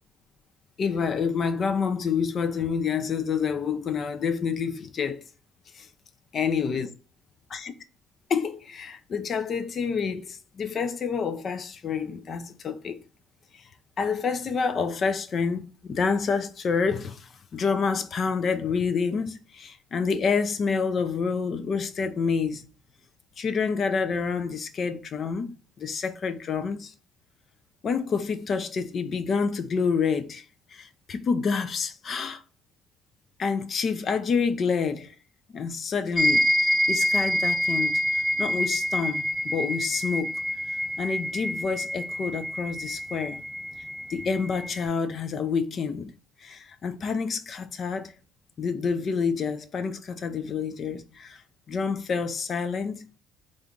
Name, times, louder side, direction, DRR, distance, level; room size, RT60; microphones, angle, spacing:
voice 1, 0.8-5.2 5.7-5.9 6.3-6.9 7.5-7.7 8.3-13.0 13.5-13.6 14.0-22.6 23.4-26.9 27.8-30.4 30.7-32.4 33.4-35.1 35.5-38.0 38.4-40.4 41.0-43.4 44.1-46.1 46.4-48.1 48.6-51.4 51.7-53.2, left 5 dB, 50° left, 0.4 m, -28 dB
sound 1, 36.2-44.8, equal, 15° left, 0.9 m, -27 dB
3.4 x 2.5 x 3.7 m
hypercardioid pair, 60°, 0 cm